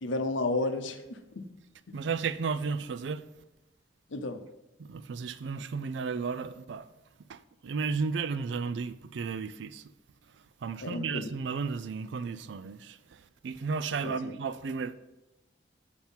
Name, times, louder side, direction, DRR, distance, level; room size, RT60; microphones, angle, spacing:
voice 1, 0.0-1.5 1.9-2.0 4.1-4.5 10.8-11.3 14.0-14.3, left 2 dB, 90° left, 0.7 m, -32 dB
voice 2, 1.9-3.2 4.8-6.9 7.3-9.8 10.6-14.9, right 5 dB, 75° right, 0.4 m, -33 dB
7.2 x 4.5 x 5.6 m
head